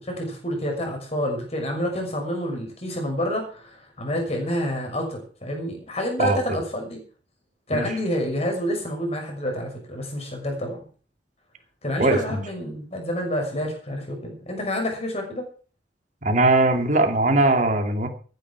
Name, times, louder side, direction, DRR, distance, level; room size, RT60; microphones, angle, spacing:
voice 1, 0.0-7.0 7.7-10.8 11.8-15.4, equal, 35° left, 3 dB, 5.9 m, -28 dB
voice 2, 6.2-6.6 7.7-7.9 12.0-12.4 16.2-18.1, right 2 dB, 45° right, 5 dB, 2.6 m, -20 dB
14.5 x 10.0 x 6.1 m, 0.39 s
head